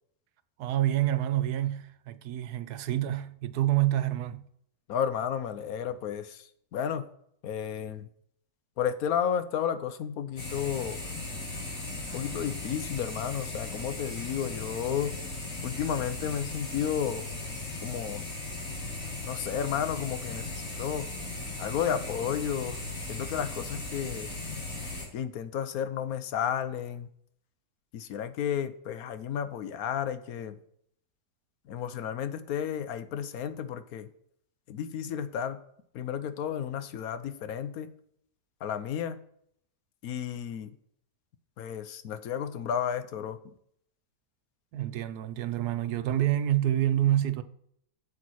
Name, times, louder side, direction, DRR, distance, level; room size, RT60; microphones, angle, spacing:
voice 1, 0.6-4.4 44.7-47.4, right 13 dB, 75° right, 1.2 m, -27 dB
voice 2, 4.9-6.4 6.7-7.0 7.4-8.1 8.8-11.0 12.1-15.1 15.6-17.3 17.8-18.3 19.2-21.1 21.6-22.8 23.1-24.3 25.1-27.1 27.9-30.6 31.7-34.1 34.7-35.6 35.9-37.9 38.6-39.2 40.0-40.7 41.6-43.4, left 8 dB, 65° left, 1.1 m, -32 dB
sound 1, 10.4-25.1, left 2 dB, 50° left, 3.4 m, -37 dB
8.1 x 7.4 x 4.6 m
omnidirectional pair, 1.8 m